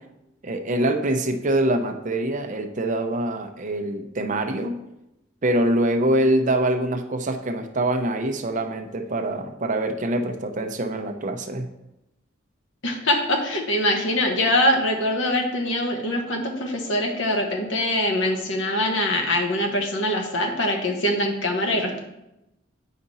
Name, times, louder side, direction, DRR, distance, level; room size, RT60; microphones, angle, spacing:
voice 1, 0.4-4.8 5.4-11.7, right 1 dB, 40° right, 5 dB, 0.7 m, -24 dB
voice 2, 12.8-22.0, left 1 dB, 75° left, 2 dB, 1.3 m, -23 dB
8.8 x 5.1 x 4.1 m, 0.90 s
head